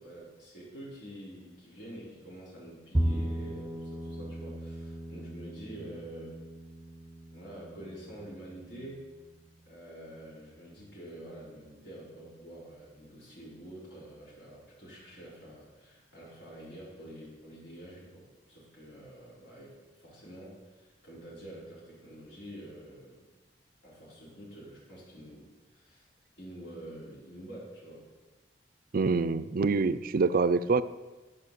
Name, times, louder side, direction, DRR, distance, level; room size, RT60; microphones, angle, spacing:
voice 1, 0.0-6.4 7.3-9.1 9.7-23.2 23.8-26.1 26.4-28.1, right 1 dB, 70° left, -7 dB, 4.2 m, -47 dB
Bowed string instrument, 2.9-9.3, right 1 dB, 10° right, 0.7 m, -36 dB
voice 2, 28.9-30.8, right 4 dB, 50° right, 14 dB, 0.4 m, -26 dB
12.5 x 5.6 x 6.7 m, 1.2 s
head